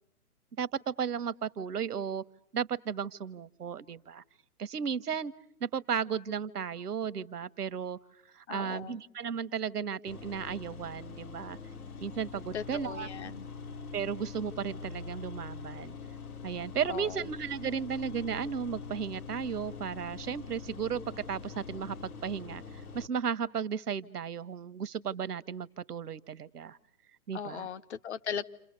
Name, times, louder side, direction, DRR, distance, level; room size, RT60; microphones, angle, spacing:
voice 1, 0.6-2.2 2.5-4.2 4.6-5.3 5.6-8.0 8.3-11.6 12.0-13.1 13.9-15.9 16.4-21.0 21.3-22.6 22.9-26.8 27.3-27.7, right 7 dB, 75° right, 14 dB, 1.0 m, -34 dB
voice 2, 8.5-9.0 12.5-13.5 16.9-17.3 27.3-28.4, left 8 dB, 45° left, 13 dB, 1.0 m, -38 dB
sound 1, 10.1-23.1, left 5 dB, 65° left, 1.7 m, -44 dB
28.5 x 27.5 x 6.6 m, 0.76 s
hypercardioid pair, 145°, 46 cm